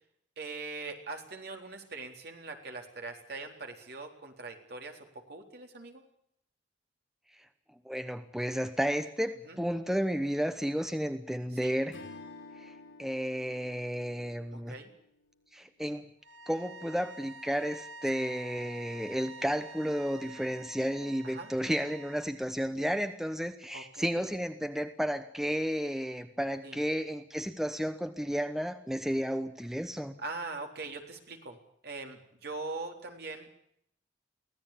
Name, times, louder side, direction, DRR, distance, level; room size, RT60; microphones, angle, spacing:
voice 1, 0.4-6.0 9.4-9.6 11.5-11.8 14.5-14.9 18.2-18.3 21.2-21.5 23.7-24.1 26.6-26.8 30.2-31.6 31.8-33.5, right 3 dB, 60° right, 4 dB, 4.0 m, -42 dB
voice 2, 7.8-12.0 12.6-12.7 13.0-14.7 15.5-16.1 16.5-30.2, equal, ahead, 9 dB, 1.0 m, -32 dB
Strum, 11.9-16.5, left 3 dB, 80° left, 4.7 m, -52 dB
sound 1, 16.2-22.3, right 3 dB, 75° right, 1.9 m, -48 dB
24.0 x 17.0 x 8.7 m, 0.72 s
head